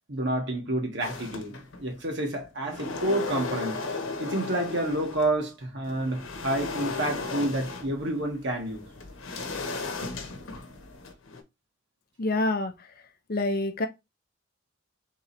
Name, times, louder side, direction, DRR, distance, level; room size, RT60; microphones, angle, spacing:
voice 1, 0.1-3.8 4.2-8.9, right 1 dB, 60° right, 1.5 m, -29 dB
sound 1, 1.0-2.0 2.4-5.4 5.8-11.4, left 3 dB, 70° left, 0.9 m, -36 dB
voice 2, 12.2-13.0 13.3-13.9, left 2 dB, 45° left, 0.6 m, -27 dB
3.7 x 3.1 x 4.0 m
head